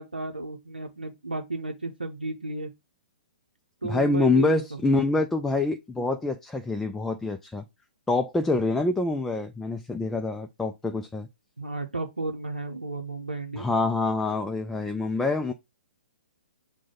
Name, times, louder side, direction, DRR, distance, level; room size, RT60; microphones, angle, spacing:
voice 1, 0.0-2.7 3.8-4.8 5.1-5.2 11.6-13.7, right 3 dB, 85° right, 0.7 m, -33 dB
voice 2, 3.8-7.6 8.1-11.3 13.6-15.5, left 3 dB, 5° left, 0.3 m, -26 dB
6.1 x 2.2 x 3.7 m
figure-of-eight pair, 120°, 5 cm